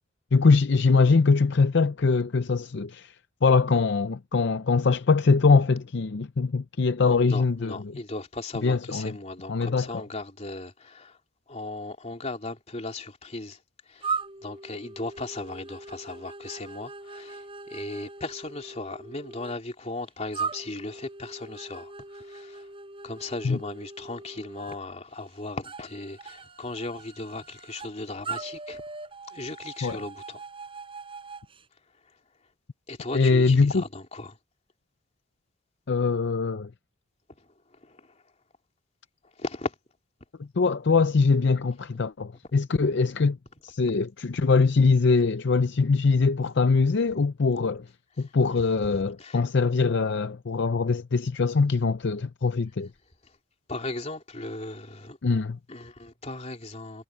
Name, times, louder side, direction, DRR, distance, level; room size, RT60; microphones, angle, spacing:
voice 1, 0.3-3.1 3.4-7.7 8.6-9.1 9.5-9.9 23.4-23.6 29.8-30.0 33.1-33.8 35.9-36.7 40.6-43.4 43.6-47.9 48.2-52.9 55.2-55.6, left 4 dB, 60° left, 0.6 m, -22 dB
voice 2, 7.1-11.2 11.5-13.6 13.9-14.1 14.4-22.7 23.0-28.8 29.3-30.4 32.9-34.4 37.4-37.5 37.7-38.2 39.4-39.7 48.2-48.3 49.2-49.4 53.2-53.4 53.7-55.2 55.7-57.0, left 2 dB, 35° left, 3.2 m, -37 dB
sound 1, 14.0-19.5 20.3-24.8 25.6-27.9 28.2-31.5, right 4 dB, 25° right, 6.7 m, -39 dB
head